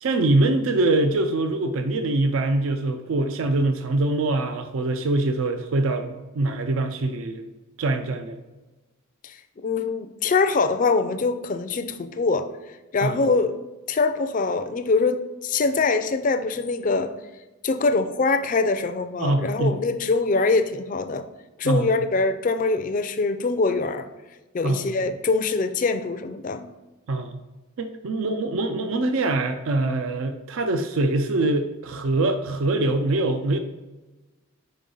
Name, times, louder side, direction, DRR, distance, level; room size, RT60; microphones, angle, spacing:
voice 1, 0.0-7.5 7.8-8.4 13.0-13.2 19.2-19.8 21.6-21.9 24.6-24.9 27.1-27.4 27.8-33.6, right 2 dB, 75° right, 7 dB, 0.4 m, -24 dB
voice 2, 9.2-12.5 12.9-13.6 13.9-17.1 17.6-21.3 21.6-24.1 24.5-26.7, left 3 dB, 40° left, 9 dB, 0.4 m, -23 dB
5.2 x 4.7 x 3.8 m, 1.2 s
head